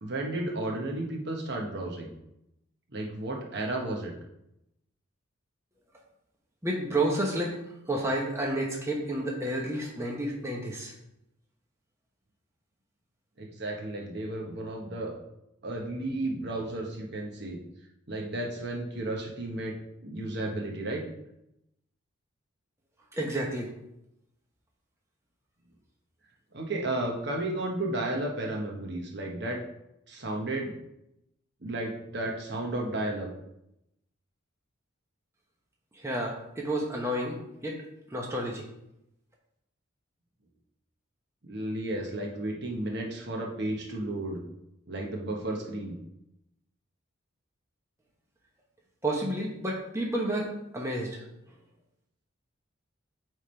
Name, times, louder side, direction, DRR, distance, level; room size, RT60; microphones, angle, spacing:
voice 1, 0.0-2.1 2.9-4.1 13.4-15.1 15.6-17.6 18.1-19.8 20.0-21.0 26.5-29.6 30.1-30.7 31.6-33.3 41.4-44.4 44.9-46.0, right 1 dB, 55° right, 0 dB, 1.1 m, -33 dB
voice 2, 6.6-10.9 23.1-23.7 35.9-38.6 49.0-51.6, right 1 dB, 15° right, -1 dB, 0.9 m, -31 dB
8.6 x 3.6 x 4.4 m, 0.83 s
head